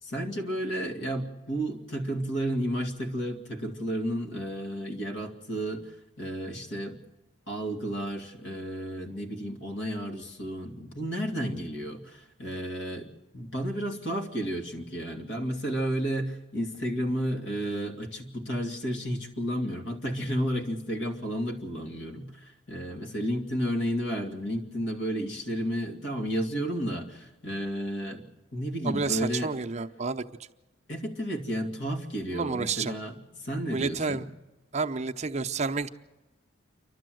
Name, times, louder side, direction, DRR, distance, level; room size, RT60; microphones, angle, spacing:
voice 1, 0.0-5.9 6.2-7.0 7.5-28.2 28.5-29.5 30.9-34.2, equal, 75° left, 3 dB, 2.5 m, -32 dB
voice 2, 28.8-30.2 32.3-32.9 33.7-34.2 34.7-35.9, right 4 dB, 35° right, 6 dB, 0.7 m, -30 dB
28.5 x 12.5 x 7.8 m, 1.1 s
head